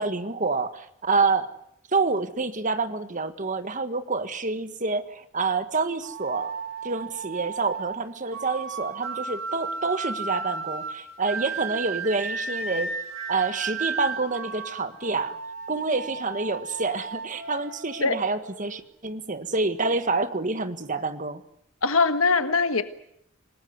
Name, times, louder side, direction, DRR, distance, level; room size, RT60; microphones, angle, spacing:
voice 1, 0.0-1.5 1.9-6.5 6.8-12.9 13.3-15.4 15.7-21.4, right 3 dB, 40° right, 10 dB, 1.7 m, -27 dB
sound 1, 6.0-18.8, right 4 dB, 80° right, 5.9 m, -34 dB
voice 2, 21.8-22.8, left 4 dB, 85° left, 10 dB, 1.5 m, -21 dB
26.5 x 19.5 x 9.5 m, 0.73 s
head